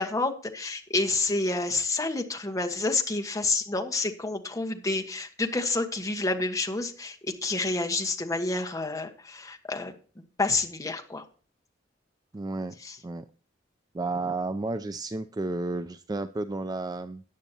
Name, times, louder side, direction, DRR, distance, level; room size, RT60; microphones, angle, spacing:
voice 1, 0.0-9.9 10.4-11.2 12.8-13.0, left 3 dB, 20° left, 4 dB, 1.3 m, -29 dB
voice 2, 12.3-12.8 13.0-13.2 13.9-17.2, right 2 dB, 20° right, 11 dB, 0.4 m, -32 dB
14.0 x 9.5 x 2.8 m, 0.39 s
head